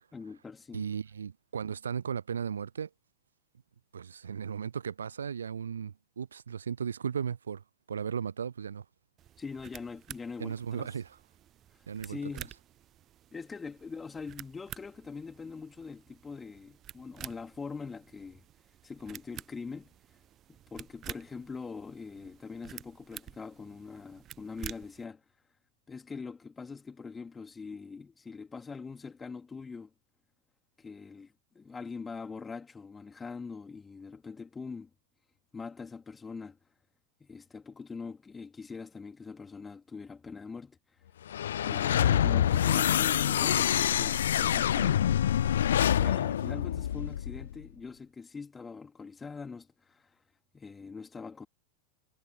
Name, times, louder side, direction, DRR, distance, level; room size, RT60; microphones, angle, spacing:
voice 1, 0.1-0.9 9.4-10.9 12.0-12.5 13.3-18.4 18.8-19.9 20.5-25.2 25.9-29.9 30.8-34.9 35.5-36.6 37.2-40.8 41.6-45.0 45.8-50.1 50.5-51.5, left 5 dB, 15° left, 3.6 m, -43 dB
voice 2, 0.7-2.9 3.9-7.6 7.9-8.8 10.4-11.2 11.9-12.2, right 7 dB, 70° right, 0.5 m, -36 dB
sound 1, 9.2-25.0, right 11 dB, 30° right, 1.0 m, -49 dB
sound 2, 41.3-47.5, left 10 dB, 60° left, 0.4 m, -26 dB
figure-of-eight pair, 90°, 0 cm